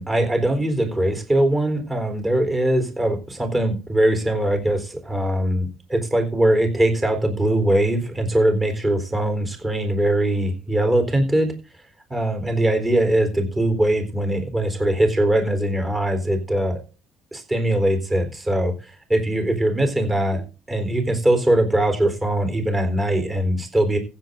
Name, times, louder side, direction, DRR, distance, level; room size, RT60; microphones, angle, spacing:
voice 1, 0.0-11.5 12.1-16.8 17.3-24.0, right 1 dB, 15° right, 6 dB, 4.0 m, -21 dB
15.5 x 8.0 x 3.8 m, 0.33 s
cardioid pair, 130°, 0 cm